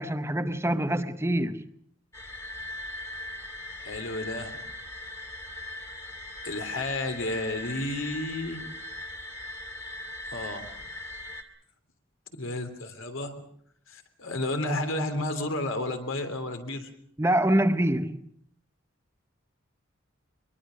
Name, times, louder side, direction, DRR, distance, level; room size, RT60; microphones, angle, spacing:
voice 1, 0.0-1.7 17.2-18.2, right 1 dB, 15° right, 0.9 m, -25 dB
sound 1, 2.1-11.4, left 1 dB, 15° left, 2.2 m, -39 dB
voice 2, 3.8-4.6 6.4-8.6 10.3-10.8 12.3-13.3 13.9-16.9, left 2 dB, 75° left, 3.2 m, -32 dB
24.0 x 22.0 x 6.4 m
head